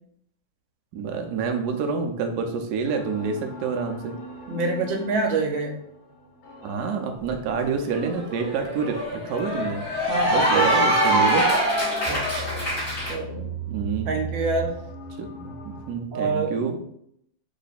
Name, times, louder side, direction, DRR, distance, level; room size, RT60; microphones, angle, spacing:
voice 1, 0.9-4.2 6.6-9.0 9.2-9.8 10.3-11.5 13.7-14.2 15.2-16.8, right 5 dB, 70° right, 4 dB, 1.1 m, -28 dB
sound 1, 2.9-15.9, right 3 dB, 85° left, 1.9 m, -39 dB
voice 2, 4.5-5.8 10.1-10.7 12.0-12.6 13.1-13.5 14.1-14.7 16.1-16.5, right 3 dB, 85° right, 3 dB, 1.5 m, -26 dB
Cheering / Applause, 7.7-13.1, right 1 dB, 25° left, 1.6 m, -24 dB
3.6 x 3.2 x 4.0 m, 0.72 s
omnidirectional pair, 2.0 m